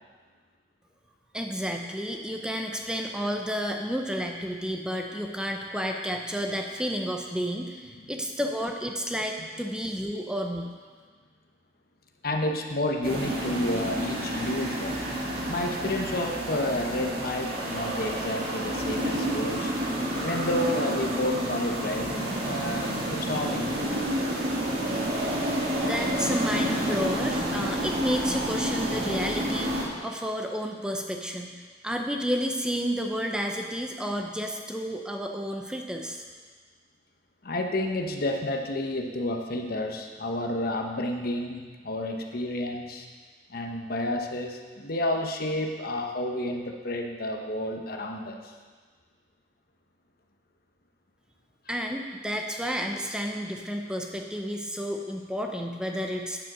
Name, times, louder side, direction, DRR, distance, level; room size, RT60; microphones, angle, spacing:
voice 1, 1.3-10.7 25.8-31.5 31.8-36.2 51.7-56.4, equal, 5° right, 2 dB, 0.7 m, -31 dB
voice 2, 12.2-15.0 15.5-19.7 20.2-24.1 37.4-43.1 43.5-48.5, left 1 dB, 60° left, 3 dB, 1.0 m, -30 dB
sound 1, 13.0-29.8, right 1 dB, 55° right, 2.1 m, -29 dB
9.3 x 7.7 x 6.2 m, 1.5 s
head